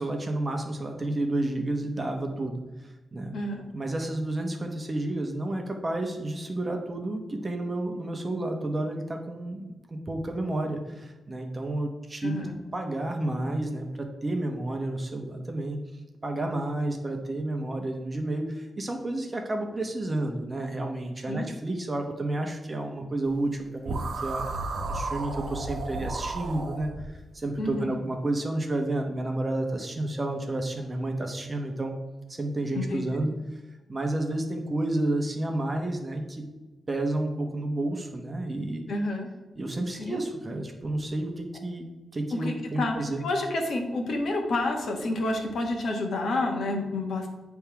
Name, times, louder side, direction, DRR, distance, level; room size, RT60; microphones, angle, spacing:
voice 1, 0.0-3.4 3.7-12.5 12.7-15.8 16.2-24.6 24.9-31.9 32.3-33.6 33.9-36.4 36.9-38.8 39.5-43.2, right 1 dB, 20° right, 3 dB, 0.9 m, -31 dB
voice 2, 3.3-3.7 12.2-12.6 21.3-21.5 27.6-28.0 32.7-33.0 38.9-39.3 40.0-40.2 42.3-47.3, left 2 dB, 60° left, 2 dB, 1.3 m, -29 dB
sound 1, 23.8-27.1, right 2 dB, 55° right, 1.0 m, -33 dB
9.3 x 3.5 x 5.8 m, 1.2 s
wide cardioid pair, 165°, 0 cm